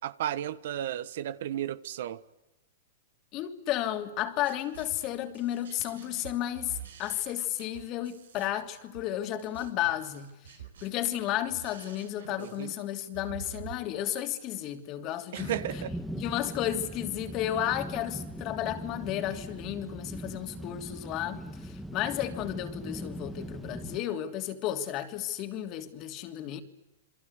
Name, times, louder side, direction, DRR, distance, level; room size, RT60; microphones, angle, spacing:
voice 1, 0.0-2.2 12.4-12.7 15.3-15.9, right 11 dB, 65° right, 1.2 m, -34 dB
voice 2, 3.3-15.5 16.1-26.6, left 12 dB, 40° left, 3.0 m, -33 dB
sound 1, 4.2-13.7, right 9 dB, 85° right, 5.1 m, -48 dB
sound 2, 15.4-24.0, equal, ahead, 1.7 m, -40 dB
28.5 x 22.5 x 8.2 m
hypercardioid pair, 130°, 0 cm